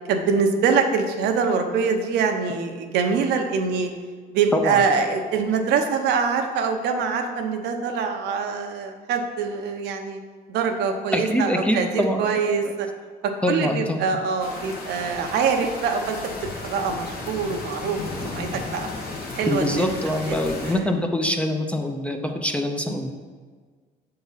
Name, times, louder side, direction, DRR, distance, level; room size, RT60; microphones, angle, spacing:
voice 1, 0.1-3.9 4.3-10.2 10.5-12.9 13.2-16.2 16.6-18.9 19.3-19.9 20.3-20.4 20.7-20.9, right 5 dB, 80° right, 4 dB, 0.8 m, -24 dB
voice 2, 11.1-12.7 13.4-14.0 19.4-23.1, left 1 dB, 5° left, 4 dB, 0.5 m, -24 dB
sound 1, 14.4-20.7, left 3 dB, 65° left, 1.4 m, -34 dB
7.0 x 3.8 x 5.6 m, 1.5 s
cardioid pair, 110°, 17 cm